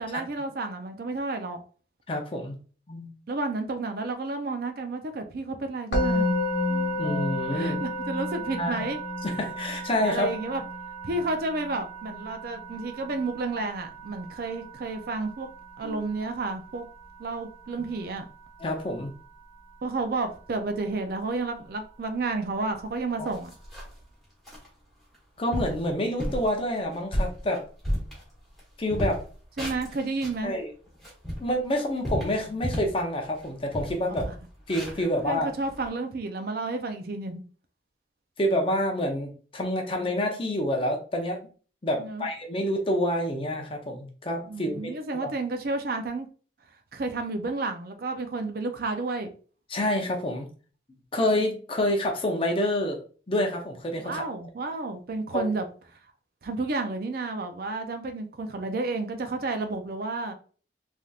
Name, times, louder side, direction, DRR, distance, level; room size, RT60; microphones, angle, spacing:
voice 1, 0.0-1.6 3.3-6.3 7.5-9.0 10.1-10.6 11.0-15.5 15.8-16.8 17.2-18.3 19.8-23.5 29.6-30.6 34.1-34.3 35.0-37.4 42.0-42.3 44.5-46.3 46.9-49.3 54.0-55.7 56.4-60.3, right 3 dB, 50° right, 0.4 m, -31 dB
voice 2, 2.1-2.6 2.9-3.1 6.7-7.8 8.5-8.9 9.2-10.3 15.8-16.0 17.8-17.9 18.6-19.1 23.2-23.3 25.4-27.6 28.8-29.2 30.4-30.7 31.4-34.3 34.7-35.5 38.4-41.4 41.8-45.3 49.7-50.5 51.1-53.0 53.3-54.2 55.3-55.4, left 1 dB, 30° left, 0.6 m, -28 dB
Musical instrument, 5.9-17.0, left 1 dB, 70° left, 1.3 m, -32 dB
sound 1, 22.8-22.9 23.2-24.0 24.5-24.7 25.1-25.2 25.5-25.8 26.2-26.5 26.9-28.6 28.9-30.4 30.9-33.0 33.4-33.5 33.7-35.9, equal, ahead, 1.1 m, -32 dB
3.3 x 2.7 x 2.3 m
head